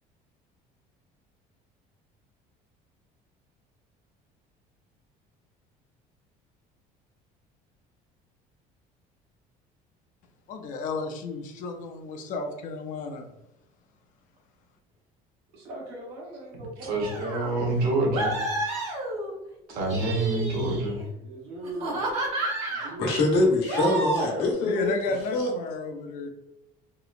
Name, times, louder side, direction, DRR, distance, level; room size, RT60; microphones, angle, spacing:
voice 1, 10.5-13.3 24.6-26.3, left 3 dB, 55° left, 5 dB, 0.5 m, -32 dB
voice 2, 15.5-17.6 21.1-22.1 22.7-23.2, right 2 dB, 85° right, -3 dB, 1.1 m, -40 dB
voice 3, 16.8-18.4 19.7-21.0, right 2 dB, 65° right, 0 dB, 0.8 m, -26 dB
sound 1, 17.0-17.5 18.1-19.4 19.8-21.0 21.6-23.0 23.7-24.5, right 2 dB, 40° right, 1.0 m, -30 dB
voice 4, 23.0-24.9 25.3-25.5, left 2 dB, 80° left, 0 dB, 0.9 m, -24 dB
2.8 x 2.1 x 2.4 m, 0.90 s
cardioid pair, 140°, 16 cm